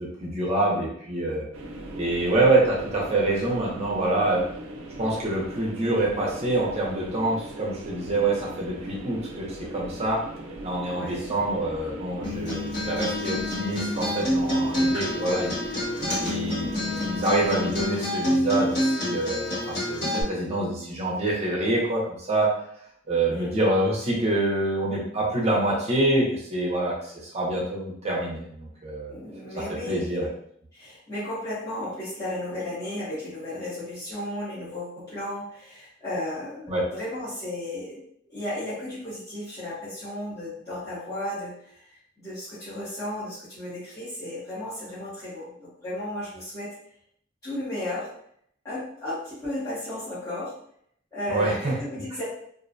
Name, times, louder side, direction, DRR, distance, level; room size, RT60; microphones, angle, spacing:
voice 1, 0.0-1.5 1.9-4.4 5.0-10.2 10.6-15.6 16.2-22.5 23.1-29.2 29.9-30.3 36.7-36.8 51.3-51.8, right 2 dB, 30° right, -4 dB, 0.5 m, -26 dB
sound 1, 1.5-17.9, right 1 dB, 90° right, 0.4 m, -39 dB
voice 2, 10.8-11.3 23.3-23.5 29.1-30.1 30.7-38.0 38.3-46.7 47.4-48.1 48.6-50.6 51.1-52.2, left 1 dB, 15° left, -13 dB, 0.8 m, -34 dB
Acoustic guitar, 12.2-20.2, left 1 dB, 50° left, 1.3 m, -27 dB
2.5 x 2.1 x 2.5 m, 0.68 s
head